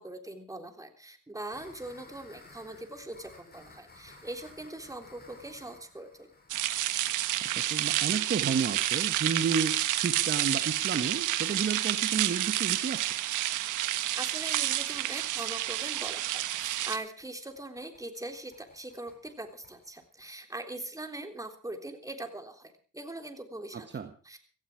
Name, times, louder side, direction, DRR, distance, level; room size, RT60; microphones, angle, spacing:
voice 1, 0.0-6.3 14.1-24.0 24.2-24.4, right 2 dB, 10° right, 5 dB, 3.5 m, -41 dB
sound 1, 1.5-9.2 9.5-9.6 9.9-10.0 10.3-10.4 10.6-10.9 11.2-20.3, left 3 dB, 30° left, 7.6 m, -57 dB
sound 2, 6.5-17.0, right 13 dB, 90° right, 1.4 m, -29 dB
voice 2, 7.5-13.1 23.7-24.1, right 6 dB, 35° right, 8 dB, 1.6 m, -32 dB
17.0 x 15.0 x 4.8 m, 0.38 s
cardioid pair, 90°, 30 cm